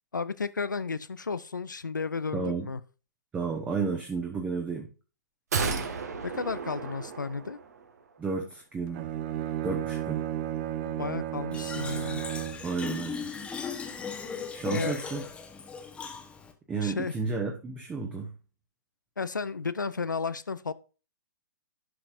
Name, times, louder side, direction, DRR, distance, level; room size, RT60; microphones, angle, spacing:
voice 1, 0.1-2.8 6.2-7.6 10.8-12.2 14.7-15.0 16.8-17.1 19.2-20.7, left 4 dB, 75° left, 0.5 m, -33 dB
voice 2, 2.3-2.7 3.3-4.9 8.2-9.1 9.6-10.2 12.6-13.3 14.5-15.2 16.7-18.3, right 4 dB, 15° right, 1.2 m, -32 dB
sound 1, 5.5-7.9 8.2-8.3, right 5 dB, 60° right, 1.6 m, -33 dB
Bowed string instrument, 8.9-12.7, right 12 dB, 35° right, 0.8 m, -33 dB
Fill (with liquid), 11.5-16.5, left 5 dB, 10° left, 1.1 m, -37 dB
11.5 x 5.9 x 2.5 m
figure-of-eight pair, 115°, 10 cm